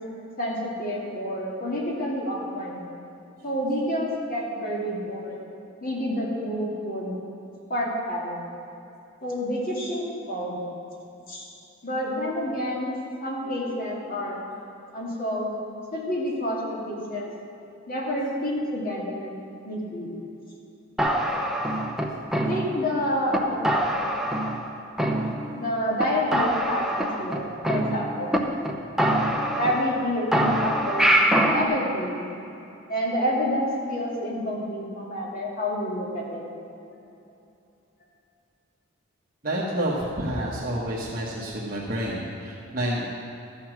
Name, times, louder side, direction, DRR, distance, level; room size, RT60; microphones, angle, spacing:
voice 1, 0.4-2.8 3.4-5.4 5.8-7.2 7.7-8.4 9.2-10.6 11.3-11.5 11.8-13.0 13.2-14.4 14.9-15.6 15.9-17.3 17.9-19.3 19.6-20.1 22.5-23.9 25.5-28.3 29.5-31.1 31.4-32.3 32.9-36.4, equal, 45° left, -3 dB, 2.3 m, -28 dB
sound 1, 21.0-22.9 23.3-23.4 23.6-24.7 25.0-25.7 26.0-26.1 26.3-28.4 28.6-28.7 29.0-30.0 30.3-31.7, right 1 dB, 5° right, 0.7 m, -24 dB
voice 2, 39.4-43.1, right 1 dB, 45° right, -6 dB, 1.3 m, -29 dB
13.0 x 7.2 x 6.1 m, 2.8 s
head